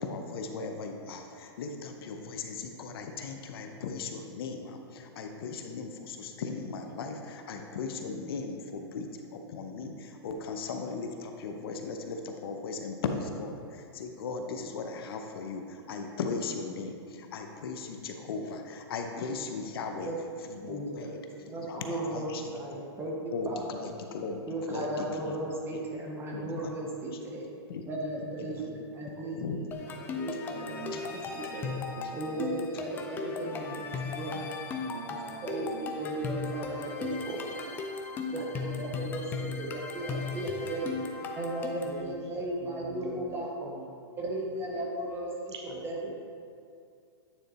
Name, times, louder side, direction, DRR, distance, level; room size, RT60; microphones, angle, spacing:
voice 1, 0.0-20.1 20.5-21.2 21.5-22.4 23.3-24.4 24.7-25.3 25.7-25.8 26.3-26.7 27.7-27.8 28.5-28.7 29.0-29.6 30.9-31.0, left 4 dB, 60° left, 4 dB, 0.7 m, -37 dB
voice 2, 19.8-20.2 20.7-21.1 21.5-23.8 24.5-27.5 27.9-31.8 32.1-34.5 35.1-37.8 38.3-40.9 41.3-43.5 44.2-45.5 45.8-46.1, right 1 dB, 15° right, -1 dB, 0.8 m, -36 dB
sound 1, 29.7-42.0, left 5 dB, 15° left, 0.4 m, -37 dB
voice 3, 30.5-31.4 31.9-32.4 33.4-33.6 34.9-36.8 37.3-37.5 38.3-39.7 40.2-40.4 41.8-44.0 45.5-46.1, right 4 dB, 85° right, 1 dB, 0.7 m, -45 dB
9.0 x 3.9 x 4.1 m, 2.4 s
hypercardioid pair, 150°, 14 cm